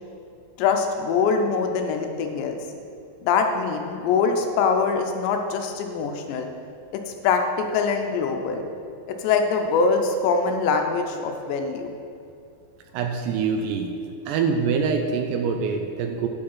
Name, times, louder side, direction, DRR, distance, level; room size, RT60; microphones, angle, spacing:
voice 1, 0.6-2.6 3.2-6.5 6.9-8.6 9.1-11.9, left 5 dB, 80° left, 4 dB, 2.9 m, -23 dB
voice 2, 12.9-13.9 14.3-16.3, right 5 dB, 80° right, 5 dB, 2.6 m, -24 dB
10.0 x 5.2 x 5.5 m, 2.6 s
omnidirectional pair, 5.1 m